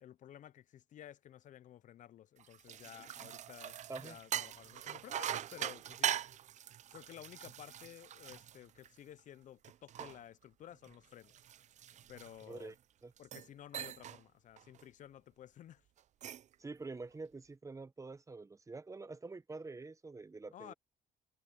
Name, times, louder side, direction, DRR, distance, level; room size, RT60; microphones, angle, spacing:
voice 1, 0.0-6.1 6.9-11.3 12.1-12.7 13.2-15.8 20.5-20.7, left 11 dB, 55° left, 0.7 m, -54 dB
sound 1, 2.4-9.2 9.6-12.7 13.2-13.5 13.7-14.2 14.6-14.8 16.0-16.5, right 10 dB, 50° right, 0.7 m, -42 dB
voice 2, 16.6-20.7, right 3 dB, 20° right, 1.3 m, -46 dB
supercardioid pair, 75°, 15 cm